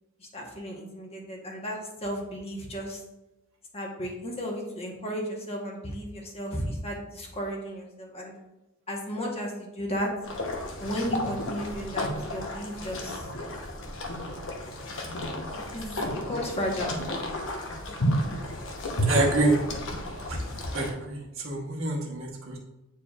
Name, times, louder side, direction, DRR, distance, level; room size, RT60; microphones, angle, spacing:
voice 1, 0.2-3.0 3.7-8.3 8.9-10.1 10.8-13.3 15.5-16.9, equal, 30° left, -1 dB, 1.2 m, -34 dB
sound 1, 10.2-20.9, equal, 60° left, 1.0 m, -32 dB
voice 2, 19.1-19.6 20.3-20.4 20.7-21.2 21.4-22.6, right 2 dB, 65° right, -1 dB, 1.1 m, -26 dB
8.5 x 4.6 x 2.4 m, 0.99 s
head